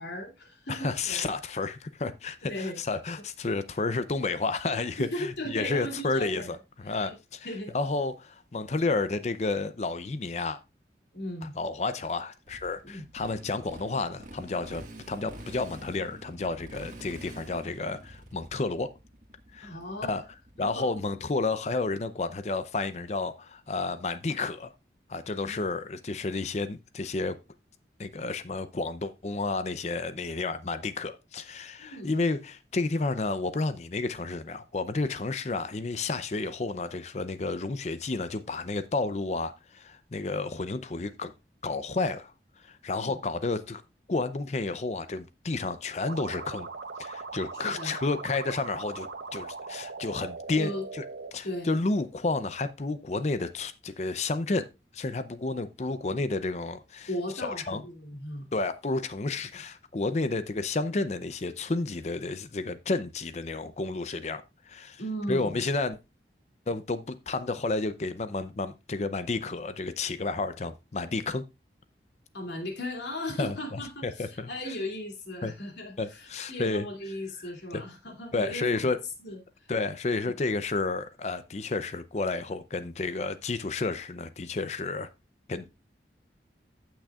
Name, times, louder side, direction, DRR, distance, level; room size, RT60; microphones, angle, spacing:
voice 1, 0.0-1.3 2.4-2.8 5.0-6.5 6.8-7.1 7.4-7.7 11.1-11.5 12.8-13.1 19.6-20.1 20.6-20.9 25.4-25.6 31.8-32.2 42.9-43.2 47.6-48.0 50.5-50.8 51.4-51.7 57.1-58.5 65.0-65.6 72.3-78.9 79.2-79.7, left 1 dB, 75° left, 2.7 m, -37 dB
voice 2, 0.7-7.5 7.7-10.6 11.6-18.9 19.5-20.2 20.6-24.7 25.1-27.4 28.0-41.3 41.6-42.3 42.6-43.8 44.1-46.7 47.0-51.0 51.3-54.7 54.9-57.1 57.4-57.8 58.5-65.0 65.3-66.0 66.7-71.4 73.4-74.8 75.4-75.5 76.0-76.9 77.4-77.8 78.3-79.0 79.7-85.1 85.5-85.7, left 3 dB, 40° left, 0.5 m, -31 dB
Motorcycle, 12.5-21.1, right 1 dB, 45° right, 1.7 m, -47 dB
sound 1, 46.1-51.3, right 4 dB, 75° right, 0.8 m, -40 dB
15.0 x 6.2 x 2.4 m
head